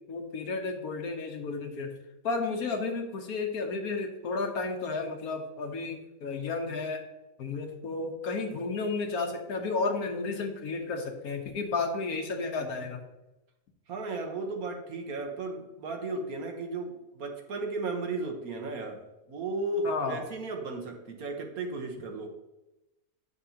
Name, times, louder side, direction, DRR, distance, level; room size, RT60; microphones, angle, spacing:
voice 1, 0.1-1.9 2.2-7.0 7.4-13.0 19.8-20.2, left 3 dB, 85° left, 4 dB, 1.6 m, -32 dB
voice 2, 13.9-19.0 19.3-22.3, right 3 dB, 80° right, 3 dB, 1.6 m, -35 dB
9.7 x 6.8 x 2.8 m, 0.97 s
omnidirectional pair, 1.5 m